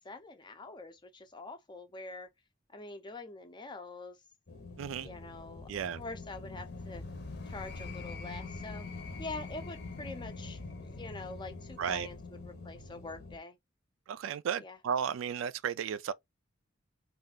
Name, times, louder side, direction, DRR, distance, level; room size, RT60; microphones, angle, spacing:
voice 1, 0.0-2.3 2.7-4.2 5.0-5.7 6.0-7.0 7.5-8.9 9.2-13.6 14.6-14.8, left 3 dB, 25° left, 0.5 m, -45 dB
sound 1, 4.5-13.4, left 3 dB, 60° left, 0.8 m, -44 dB
voice 2, 4.8-5.1 5.7-6.0 11.8-12.1 14.1-16.1, right 8 dB, 80° right, 0.3 m, -34 dB
2.6 x 2.4 x 3.5 m
head